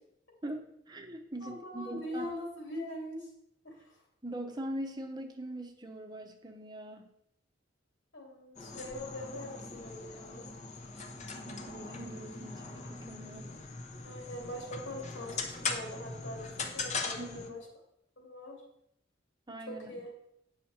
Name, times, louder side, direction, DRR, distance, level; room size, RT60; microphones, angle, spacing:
voice 1, 0.4-2.3 4.2-7.1 11.7-13.5 17.2-17.5 19.5-19.9, right 1 dB, 20° right, 5 dB, 0.8 m, -42 dB
voice 2, 1.4-3.3 3.6-4.0 8.1-10.5 14.0-17.7 18.2-18.6 19.7-20.1, left 1 dB, 85° left, -1 dB, 3.1 m, -42 dB
sound 1, 8.6-17.5, left 4 dB, 40° left, 0.9 m, -40 dB
8.9 x 5.7 x 4.4 m, 0.77 s
head